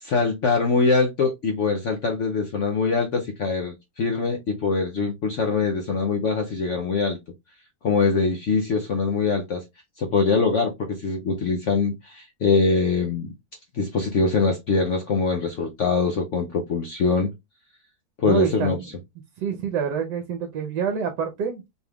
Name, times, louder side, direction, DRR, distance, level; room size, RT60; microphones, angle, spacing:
voice 1, 0.0-7.2 7.8-9.6 10.0-13.3 13.7-17.3 18.2-18.8, left 4 dB, 85° left, 0.6 m, -23 dB
voice 2, 18.2-18.9 19.4-21.6, right 7 dB, 70° right, 1.3 m, -27 dB
4.3 x 3.4 x 2.3 m
omnidirectional pair, 2.1 m